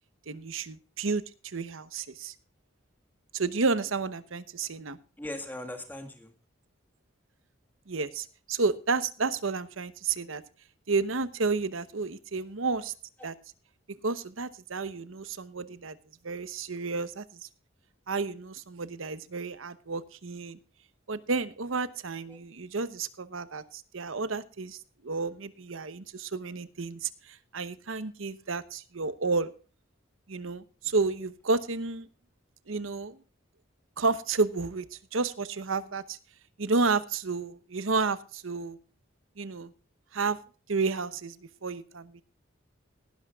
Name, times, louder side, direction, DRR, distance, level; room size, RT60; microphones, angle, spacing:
voice 1, 0.3-2.3 3.3-5.0 7.9-10.4 10.9-12.9 13.2-13.3 14.0-16.0 16.2-17.5 18.1-20.6 21.1-24.8 25.0-29.5 30.3-32.1 32.7-33.2 34.0-36.2 36.6-38.8 39.4-39.7 40.1-40.4 40.7-41.4 41.6-42.2, right 4 dB, 85° right, 15 dB, 0.9 m, -31 dB
voice 2, 5.2-6.3 13.2-13.3 22.3-22.4, left 1 dB, 10° left, 5 dB, 1.6 m, -39 dB
19.0 x 11.5 x 2.4 m, 0.36 s
head